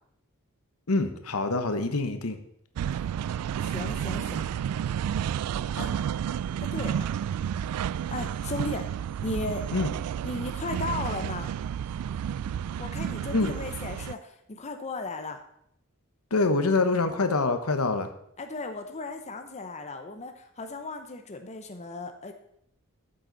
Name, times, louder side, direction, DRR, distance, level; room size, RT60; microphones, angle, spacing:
voice 1, 0.9-2.4 9.7-9.9 13.3-13.5 16.3-18.1, left 3 dB, 70° left, 8 dB, 1.0 m, -25 dB
sound 1, 2.8-14.1, right 9 dB, 85° right, 0.3 m, -31 dB
voice 2, 3.6-4.5 5.8-5.9 6.6-7.1 8.1-8.9 9.2-9.6 10.2-11.5 12.8-15.4 18.4-22.3, left 2 dB, 30° left, 6 dB, 0.8 m, -36 dB
13.0 x 7.7 x 4.0 m, 0.72 s
head